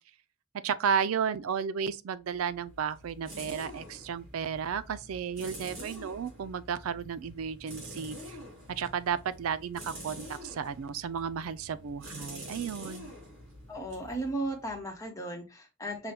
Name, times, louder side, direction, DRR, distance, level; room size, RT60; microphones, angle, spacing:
voice 1, 0.6-8.4 8.7-13.1, right 7 dB, 90° right, 0.4 m, -33 dB
sound 1, 2.3-15.0, equal, 65° right, 2.4 m, -46 dB
voice 2, 13.7-16.1, right 1 dB, 15° left, 0.9 m, -35 dB
5.7 x 2.2 x 3.3 m
head